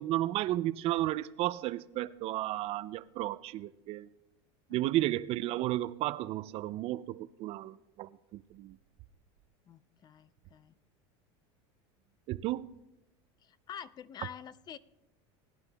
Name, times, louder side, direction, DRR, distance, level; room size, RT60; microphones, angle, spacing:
voice 1, 0.0-4.1 4.7-8.8 12.3-12.7, right 15 dB, 45° right, 0.4 m, -33 dB
voice 2, 9.7-10.7 13.4-14.8, left 9 dB, 30° left, 0.4 m, -47 dB
20.0 x 11.0 x 2.3 m
supercardioid pair, 125°, 14 cm